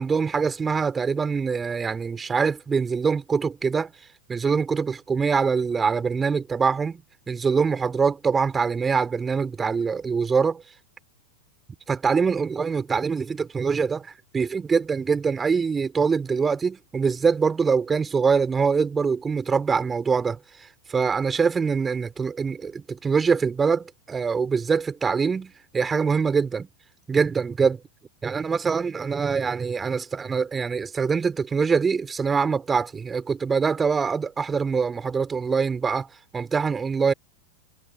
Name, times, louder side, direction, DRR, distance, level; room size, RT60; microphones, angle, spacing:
voice 1, 0.0-3.9 4.3-10.6 11.9-20.4 20.9-26.7 27.1-27.8 28.2-36.1 36.3-37.1, right 5 dB, 15° right, 3.9 m, -24 dB
figure-of-eight pair, 90°, 0 cm